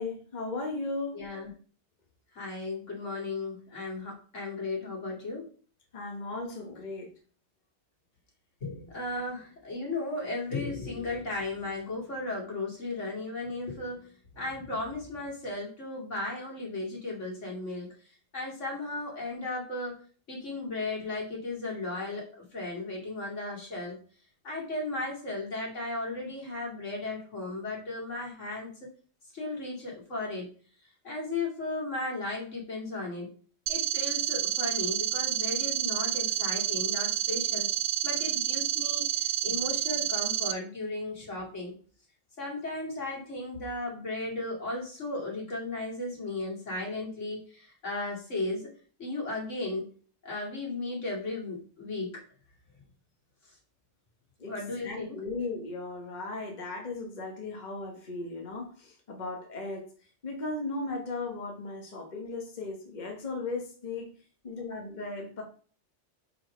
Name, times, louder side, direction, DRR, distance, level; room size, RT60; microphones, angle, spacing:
voice 1, 0.0-1.3 5.9-7.1 54.4-54.5 54.8-59.9 60.2-64.1 64.4-65.4, left 3 dB, 40° left, 1 dB, 1.4 m, -36 dB
voice 2, 1.1-1.5 2.3-5.5 8.6-17.9 18.3-20.0 20.3-24.0 24.4-28.9 29.3-30.5 31.0-33.3 33.7-37.7 38.0-41.7 42.4-48.7 49.0-49.9 50.2-52.2 54.5-55.2, left 2 dB, 80° left, -2 dB, 2.8 m, -35 dB
sound 1, 33.7-40.5, right 11 dB, 70° right, 0.9 m, -29 dB
5.9 x 4.9 x 5.0 m, 0.42 s
omnidirectional pair, 1.3 m